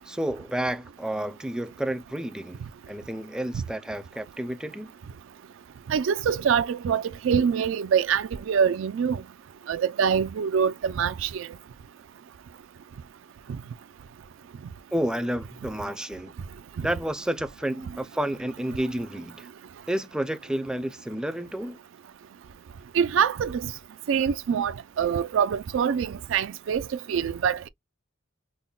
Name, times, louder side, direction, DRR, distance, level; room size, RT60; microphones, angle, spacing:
voice 1, 0.1-2.6 2.9-4.9 14.9-16.4 16.8-19.5 19.9-21.8, right 1 dB, 5° right, 0.4 m, -30 dB
voice 2, 5.9-9.2 9.7-11.5 16.8-16.9 22.9-23.7 24.1-27.7, right 7 dB, 65° right, 0.3 m, -25 dB
5.3 x 2.1 x 2.3 m
head